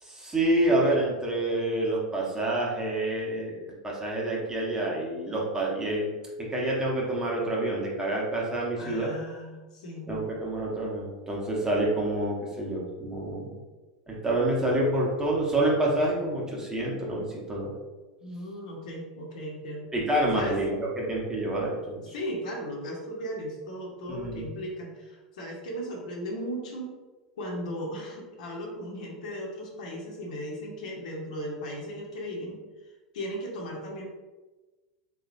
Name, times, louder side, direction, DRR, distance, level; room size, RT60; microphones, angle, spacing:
voice 1, 0.0-3.6 3.8-6.1 6.4-9.2 10.1-13.6 14.1-17.7 19.9-22.1 24.1-24.5, right 1 dB, 15° right, -3 dB, 1.0 m, -28 dB
voice 2, 8.8-10.1 18.2-19.9 20.3-20.6 22.0-26.9 27.3-32.6 33.1-34.0, equal, 70° left, -2 dB, 1.0 m, -36 dB
3.9 x 3.0 x 2.6 m, 1.2 s
hypercardioid pair, 90°, 4 cm